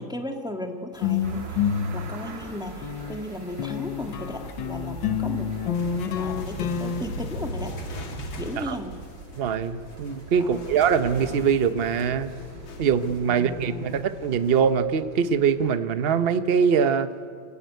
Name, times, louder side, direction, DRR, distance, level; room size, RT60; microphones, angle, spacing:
voice 1, 0.0-7.7 8.4-9.0 10.4-10.8 13.2-14.1, equal, ahead, 3 dB, 1.5 m, -36 dB
sound 1, 0.9-3.2 3.6-7.5, left 8 dB, 70° left, 1.5 m, -29 dB
sound 2, 1.2-15.8, right 4 dB, 65° right, 2.0 m, -43 dB
sound 3, 5.7-14.6, equal, 85° left, 3.1 m, -38 dB
voice 2, 9.4-12.3 12.8-17.1, right 7 dB, 50° right, 11 dB, 0.7 m, -23 dB
26.0 x 14.5 x 9.4 m, 2.2 s
omnidirectional pair, 2.1 m